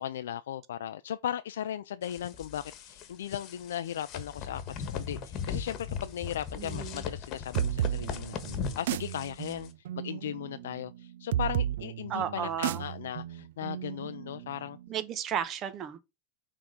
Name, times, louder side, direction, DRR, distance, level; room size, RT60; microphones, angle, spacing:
voice 1, 0.0-14.8, left 10 dB, 85° left, 0.4 m, -37 dB
sound 1, 2.0-9.7, left 6 dB, 45° left, 1.3 m, -39 dB
voice 2, 6.6-7.0 12.1-12.9 14.9-16.0, right 8 dB, 35° right, 1.0 m, -34 dB
sound 2, 7.5-14.9, right 11 dB, 75° right, 0.4 m, -34 dB
6.1 x 3.7 x 5.0 m
hypercardioid pair, 120°, 0 cm